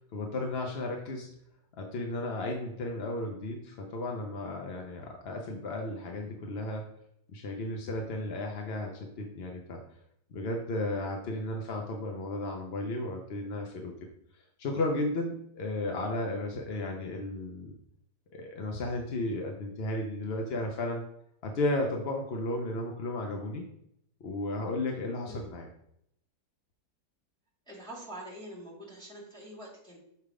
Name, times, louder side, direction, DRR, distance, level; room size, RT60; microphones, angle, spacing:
voice 1, 0.0-1.3 1.7-6.9 7.3-9.8 10.3-13.9 14.3-17.7 18.3-21.0 21.4-23.7 24.2-25.7, left 2 dB, 55° left, 1 dB, 0.7 m, -34 dB
voice 2, 27.7-30.0, right 1 dB, 5° left, -7 dB, 2.1 m, -45 dB
6.8 x 3.4 x 4.8 m, 0.74 s
omnidirectional pair, 1.8 m